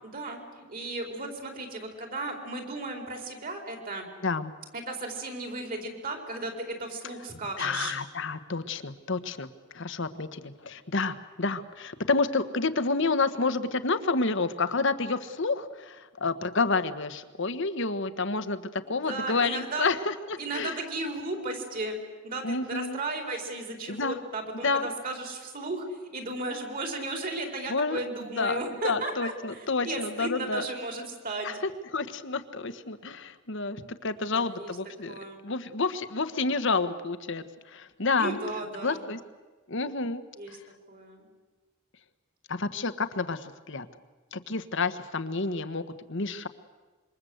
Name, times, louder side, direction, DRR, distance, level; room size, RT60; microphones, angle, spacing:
voice 1, 0.0-4.1 4.7-7.9 18.9-19.9 20.4-22.0 22.2-31.5 34.3-34.7 35.1-35.4 38.2-39.0 40.4-40.6 40.9-41.3, right 2 dB, 45° right, 4 dB, 4.5 m, -35 dB
voice 2, 4.2-4.5 7.6-9.5 9.7-20.8 22.4-23.0 23.9-24.2 24.6-24.9 27.7-28.0 28.4-28.6 28.8-30.7 31.4-35.2 35.4-38.4 38.8-39.2 39.7-40.6 42.5-43.9 44.3-45.8 46.1-46.5, left 3 dB, 60° left, 11 dB, 1.4 m, -29 dB
27.0 x 24.0 x 8.0 m, 1.3 s
head